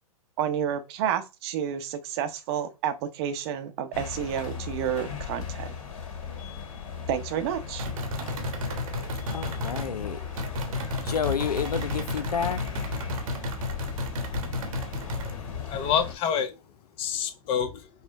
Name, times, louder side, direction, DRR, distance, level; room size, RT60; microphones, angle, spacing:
voice 1, 0.4-5.7 7.1-7.9, right 9 dB, 40° right, 0.8 m, -30 dB
sound 1, 3.9-16.1, left 7 dB, 55° left, 1.8 m, -37 dB
sound 2, 7.8-9.9 10.4-15.3, left 1 dB, 65° right, 1.1 m, -33 dB
voice 2, 9.3-10.2 11.0-12.6, left 7 dB, 85° left, 0.5 m, -29 dB
voice 3, 14.6-16.6 17.0-17.9, left 8 dB, 25° left, 0.7 m, -29 dB
5.6 x 2.1 x 3.9 m
hypercardioid pair, 120°, 19 cm